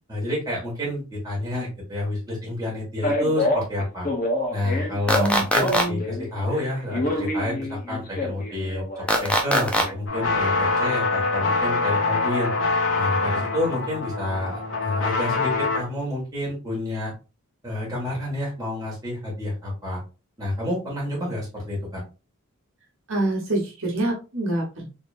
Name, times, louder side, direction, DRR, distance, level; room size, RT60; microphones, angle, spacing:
voice 1, 0.1-4.1 4.5-12.5 13.0-17.1 17.6-20.0 20.4-22.0, left 1 dB, 15° right, -5 dB, 2.0 m, -29 dB
Male speech man speaking, 3.0-6.3 6.5-9.9, left 1 dB, 40° left, 1.1 m, -27 dB
sound 1, 5.1-5.8 9.1-9.8, equal, 5° left, 0.5 m, -20 dB
voice 2, 5.1-6.0 23.1-24.9, right 2 dB, 60° right, -3 dB, 1.2 m, -26 dB
sound 2, 10.1-15.8, left 3 dB, 55° left, 1.5 m, -24 dB
4.2 x 3.5 x 2.6 m, 0.31 s
head